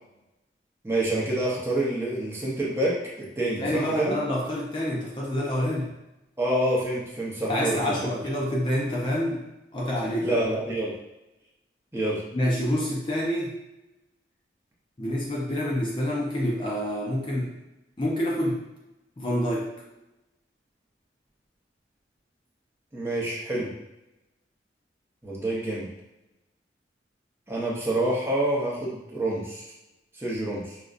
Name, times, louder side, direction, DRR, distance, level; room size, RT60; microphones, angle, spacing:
voice 1, 0.8-4.2 6.4-8.1 10.2-10.9 11.9-12.2 22.9-23.7 25.2-25.9 27.5-29.6 30.2-30.8, right 1 dB, 15° right, -6 dB, 0.7 m, -27 dB
voice 2, 3.4-5.9 7.5-9.4 9.7-10.4 12.3-13.6 15.0-17.5 18.0-18.6 19.2-19.7, left 1 dB, 25° left, -4 dB, 0.5 m, -27 dB
5.0 x 2.2 x 2.4 m, 0.95 s
head